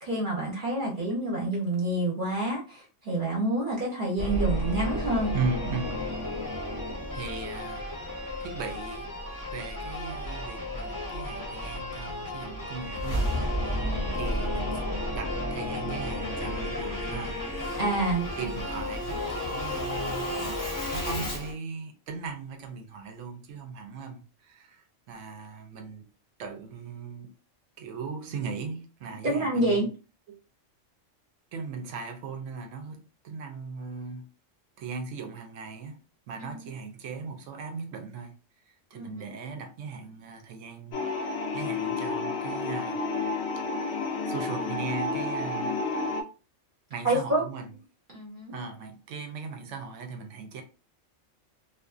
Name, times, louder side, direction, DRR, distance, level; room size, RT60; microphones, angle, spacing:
voice 1, 0.0-5.3 13.8-14.2 17.7-18.3 29.2-29.9 36.4-36.7 38.9-39.2 47.0-47.4 48.1-48.5, right 2 dB, 50° right, 0.8 m, -28 dB
Singing / Musical instrument, 4.2-21.5, left 1 dB, 20° left, 0.6 m, -32 dB
voice 2, 5.3-6.0 7.1-7.9 8.4-9.1 9.5-14.8 15.1-17.4 18.3-20.3 20.9-26.0 26.4-27.3 27.8-29.9 30.3-30.4 31.5-34.3 34.8-36.0 36.3-38.3 38.9-43.0 44.3-45.9 46.9-47.7 48.5-50.6, right 4 dB, 80° right, 0.9 m, -38 dB
sound 1, 40.9-46.2, left 3 dB, 75° left, 0.9 m, -30 dB
2.5 x 2.3 x 2.4 m
omnidirectional pair, 1.3 m